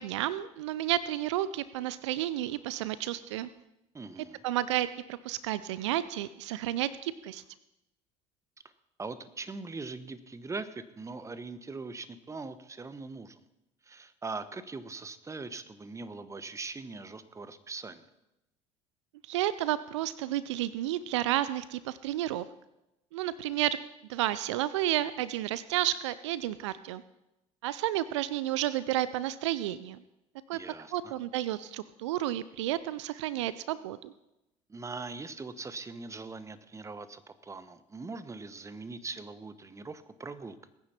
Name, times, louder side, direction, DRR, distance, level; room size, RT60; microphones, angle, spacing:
voice 1, 0.0-3.5 4.4-7.4 19.2-22.5 23.1-23.8 24.1-27.0 27.6-30.0 30.5-30.6 30.9-34.1, right 13 dB, 75° right, 17 dB, 0.5 m, -31 dB
voice 2, 3.9-4.4 9.0-13.4 13.8-18.0 30.5-31.1 34.7-40.6, right 3 dB, 20° right, 13 dB, 1.1 m, -41 dB
21.0 x 9.7 x 4.4 m, 0.91 s
hypercardioid pair, 65°, 15 cm